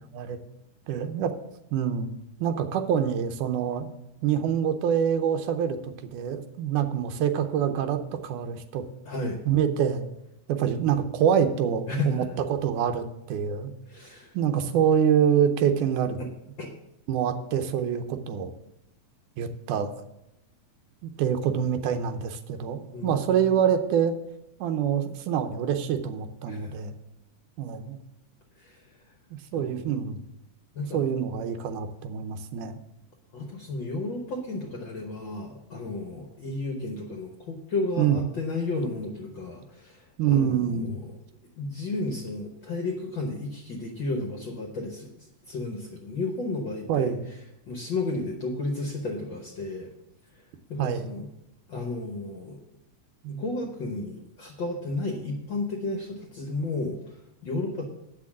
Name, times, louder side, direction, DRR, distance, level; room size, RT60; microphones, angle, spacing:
voice 1, 0.9-1.3 1.7-2.1 2.4-3.9 4.2-8.8 9.5-10.0 10.5-12.2 12.5-13.7 14.3-16.2 17.1-18.5 19.4-19.9 21.0-24.2 24.6-26.9 27.6-28.0 29.5-30.2 30.9-32.8 38.0-38.2 40.2-41.0 46.9-47.2 50.8-51.1 53.2-53.3, right 8 dB, 90° right, 8 dB, 2.3 m, -26 dB
voice 2, 9.0-9.4 11.9-12.3 13.9-14.3 16.2-16.3 16.6-16.7 22.9-23.6 26.5-26.7 28.6-28.8 29.5-29.9 30.7-31.1 33.3-41.1 41.6-45.1 45.5-47.1 47.7-49.9 50.7-51.3 51.7-52.6 53.3-57.8, left 2 dB, 60° left, 1 dB, 1.2 m, -33 dB
8.5 x 6.2 x 7.4 m, 0.87 s
omnidirectional pair, 3.5 m